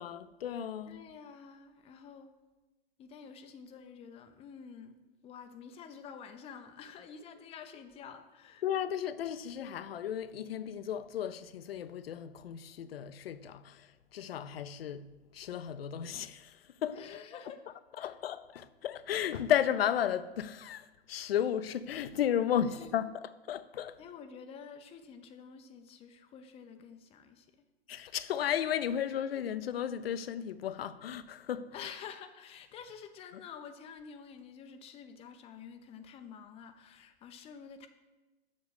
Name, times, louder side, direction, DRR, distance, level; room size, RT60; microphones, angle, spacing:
voice 1, 0.0-1.0 8.6-17.0 18.0-24.0 27.9-31.7, left 9 dB, 65° left, 0.6 m, -34 dB
voice 2, 0.9-2.3 3.0-5.0 5.2-8.6 16.9-17.6 18.0-18.1 22.6-23.0 24.0-27.7 31.7-37.9, left 7 dB, 20° left, 0.6 m, -49 dB
7.4 x 6.3 x 6.4 m
figure-of-eight pair, 110°, 32 cm